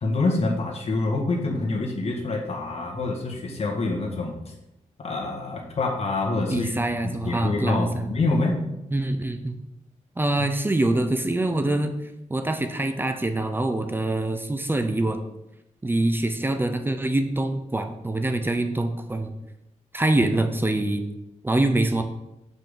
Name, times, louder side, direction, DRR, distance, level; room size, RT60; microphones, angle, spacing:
voice 1, 0.0-4.4 5.0-6.7 7.0-8.6, left 3 dB, 50° left, 0 dB, 1.7 m, -26 dB
voice 2, 6.5-8.1 8.9-9.6 10.2-11.9 12.3-15.2 15.8-19.3 19.9-21.0 21.4-22.0, right 2 dB, 15° right, 7 dB, 0.7 m, -24 dB
6.1 x 5.4 x 6.8 m, 0.89 s
wide cardioid pair, 150°, 13 cm